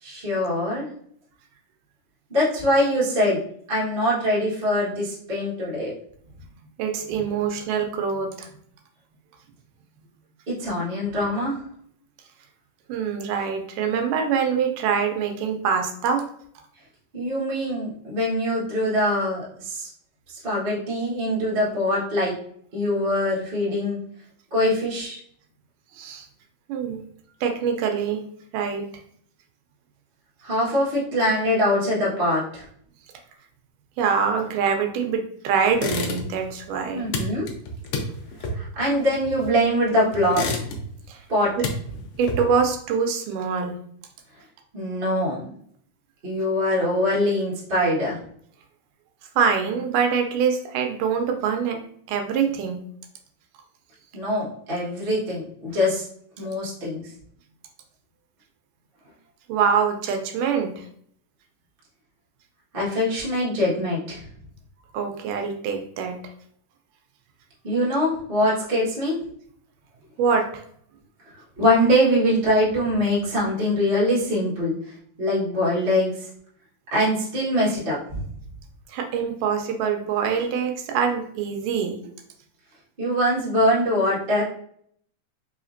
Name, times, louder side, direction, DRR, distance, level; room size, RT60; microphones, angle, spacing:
voice 1, 0.0-0.9 2.3-3.4 3.7-5.9 10.5-11.6 17.1-19.9 20.4-22.3 22.7-24.0 24.5-25.2 30.4-32.6 36.9-37.5 38.5-40.4 41.3-41.5 44.7-45.5 46.2-48.2 54.1-56.0 56.4-57.0 62.7-64.2 67.6-69.2 71.6-74.7 75.2-76.3 76.9-78.2 83.0-84.4, left 1 dB, 50° right, -7 dB, 0.6 m, -23 dB
voice 2, 6.8-8.5 12.9-16.2 25.9-26.3 26.7-27.0 27.4-28.2 28.5-28.8 34.0-37.1 41.1-41.2 41.6-41.7 42.2-43.7 49.4-51.8 52.1-52.8 59.5-60.9 64.9-66.2 70.2-70.6 78.9-82.1, right 6 dB, 80° right, 4 dB, 2.1 m, -24 dB
sound 1, 35.7-36.5 36.8-39.7 40.1-41.1 41.4-42.7, left 2 dB, 85° left, 1.4 m, -30 dB
4.9 x 3.4 x 2.5 m, 0.64 s
omnidirectional pair, 3.8 m